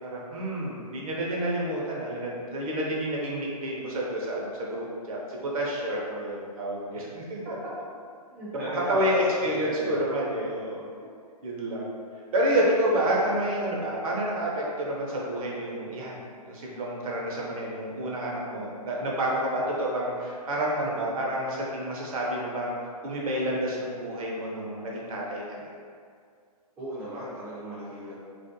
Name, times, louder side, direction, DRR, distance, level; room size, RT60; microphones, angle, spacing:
voice 1, 0.0-7.5 8.9-10.9 11.4-11.9 12.3-16.2 16.5-22.7 23.0-25.7, right 1 dB, 60° right, -3 dB, 0.7 m, -29 dB
voice 2, 5.9-6.2 8.3-9.0 9.4-10.0 13.0-13.3 26.8-28.2, right 1 dB, 10° right, -10 dB, 0.3 m, -37 dB
2.5 x 2.1 x 2.5 m, 2.1 s
hypercardioid pair, 140°, 20 cm